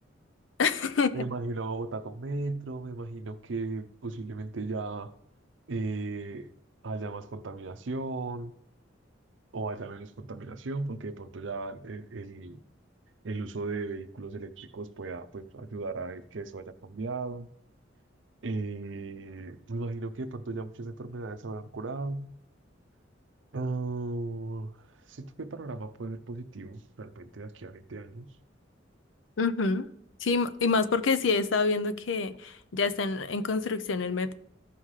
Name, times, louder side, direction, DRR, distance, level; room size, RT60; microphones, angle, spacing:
voice 1, 0.6-1.2 29.4-29.9 30.2-34.3, left 4 dB, 85° left, 0.6 m, -27 dB
voice 2, 1.1-5.1 5.7-6.5 6.8-8.5 9.5-12.6 13.2-17.5 18.4-22.3 23.5-28.3, right 3 dB, 75° right, 0.6 m, -36 dB
14.5 x 5.6 x 3.2 m
head